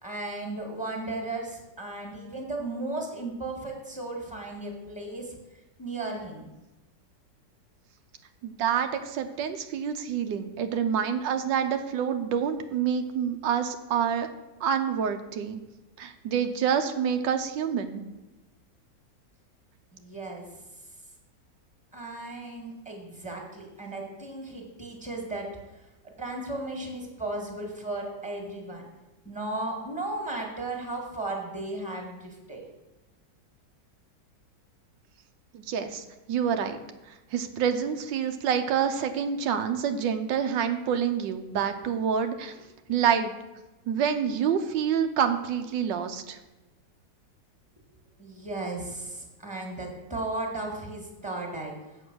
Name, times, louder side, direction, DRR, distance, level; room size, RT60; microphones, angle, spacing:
voice 1, 0.0-5.4 5.8-6.5 19.9-20.5 21.9-25.6 26.0-28.9 29.3-32.6 48.2-51.8, right 2 dB, 5° right, 1 dB, 1.8 m, -35 dB
voice 2, 8.4-14.3 14.6-15.6 16.0-18.0 35.5-42.5 42.9-43.3 43.9-46.4, right 7 dB, 90° right, 7 dB, 1.4 m, -27 dB
7.8 x 6.7 x 6.2 m, 1.1 s
omnidirectional pair, 1.9 m